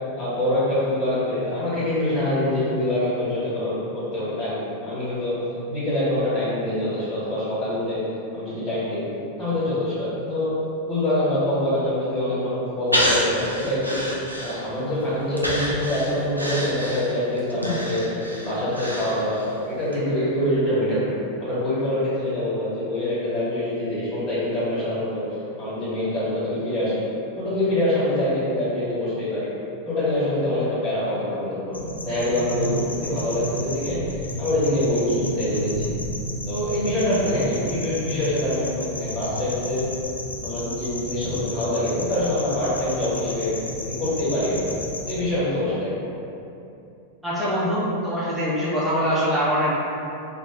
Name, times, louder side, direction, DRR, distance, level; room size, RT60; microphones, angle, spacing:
voice 1, 0.2-5.3 5.7-8.0 8.3-9.0 9.4-10.5 10.9-14.0 14.4-18.1 18.4-21.1 21.4-25.3 25.6-27.0 27.3-29.5 29.8-31.7 32.0-34.0 34.4-35.9 36.4-39.8 40.4-43.5 43.8-44.6 45.0-46.1, left 1 dB, 30° left, -13 dB, 1.5 m, -25 dB
Breathing, 12.9-14.9 15.4-19.6 19.9-20.0, equal, 85° right, 0.4 m, -27 dB
sound 1, 31.7-45.2, equal, 80° left, 0.4 m, -32 dB
voice 2, 47.2-49.7, equal, 5° right, -9 dB, 0.9 m, -23 dB
2.8 x 2.3 x 3.5 m, 2.8 s
figure-of-eight pair, 90°, 0 cm